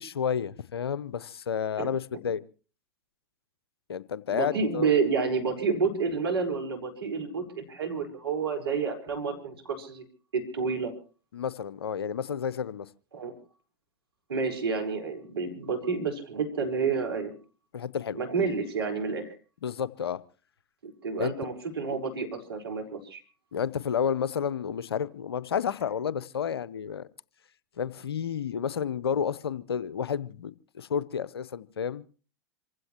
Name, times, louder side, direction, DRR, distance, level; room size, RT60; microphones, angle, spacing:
voice 1, 0.0-2.4 3.9-4.9 11.3-12.9 17.7-18.2 19.6-20.2 21.2-21.3 23.5-27.1 27.8-32.0, left 7 dB, 85° left, 0.7 m, -31 dB
voice 2, 4.3-10.0 10.3-10.9 13.1-13.3 14.3-17.3 18.1-19.3 20.8-23.2, right 5 dB, 85° right, 4.4 m, -29 dB
27.0 x 15.5 x 2.9 m
hypercardioid pair, 95°, 13 cm